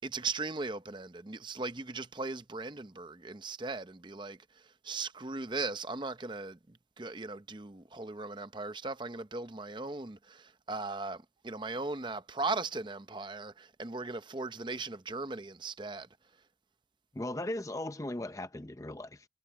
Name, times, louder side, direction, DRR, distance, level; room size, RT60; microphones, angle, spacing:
voice 1, 0.0-16.1, right 3 dB, 25° right, 0.7 m, -38 dB
voice 2, 17.1-19.3, left 1 dB, 20° left, 0.6 m, -37 dB
head